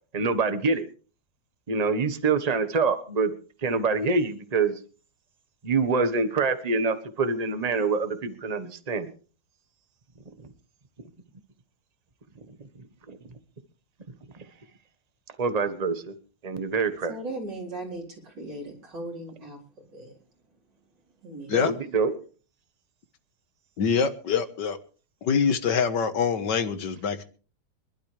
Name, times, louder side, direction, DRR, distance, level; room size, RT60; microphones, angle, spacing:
voice 1, 0.1-0.8 1.7-3.3 3.6-4.8 5.6-9.1 15.4-16.1 16.4-17.1 21.5-22.1, right 4 dB, 25° right, 10 dB, 1.2 m, -25 dB
voice 2, 17.1-20.1 21.2-21.6, right 2 dB, 80° right, -2 dB, 5.0 m, -38 dB
voice 3, 23.8-24.8 25.2-27.2, left 6 dB, 85° left, 10 dB, 1.9 m, -25 dB
25.0 x 12.0 x 3.3 m, 0.39 s
omnidirectional pair, 1.9 m